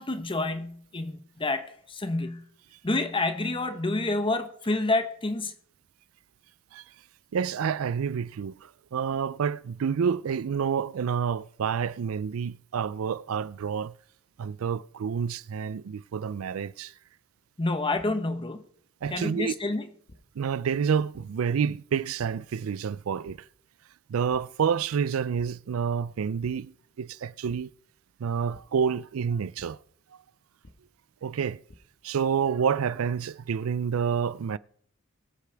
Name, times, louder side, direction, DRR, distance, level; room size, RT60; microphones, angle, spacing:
voice 1, 0.0-2.4 2.8-5.5 17.6-18.6 19.1-19.9, left 2 dB, 25° left, 1.0 m, -28 dB
voice 2, 7.3-14.0 14.4-16.9 19.0-19.5 20.4-23.4 24.1-27.7 28.2-29.8 31.2-31.6 32.0-34.6, right 7 dB, 90° right, 0.4 m, -28 dB
sound 1, 18.0-18.1 19.0-19.1 20.1-20.2 21.1-21.2 22.2-22.3 23.2-23.3 23.8-24.0 24.3-24.4 25.3-25.4 26.4-26.5 27.5-27.6 28.5-28.6 29.6-29.7 30.6-30.7 31.4-31.8, left 2 dB, 55° left, 1.4 m, -51 dB
22.0 x 8.3 x 3.4 m
head